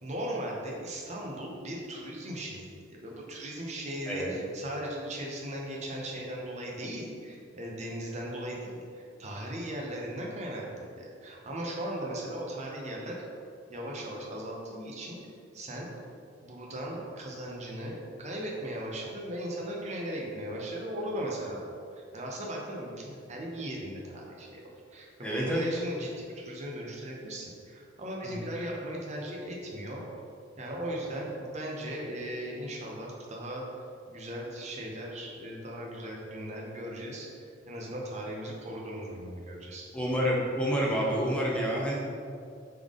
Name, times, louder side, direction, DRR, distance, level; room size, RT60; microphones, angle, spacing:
voice 1, 0.0-13.2 13.7-15.2 15.5-15.9 16.4-21.7 22.1-24.6 24.9-30.1 30.6-33.6 34.1-39.9, right 1 dB, 35° right, -2 dB, 0.7 m, -38 dB
voice 2, 25.2-25.6 28.2-28.4 39.9-41.9, equal, 5° left, -4 dB, 0.7 m, -28 dB
3.7 x 3.4 x 3.6 m, 2.4 s
head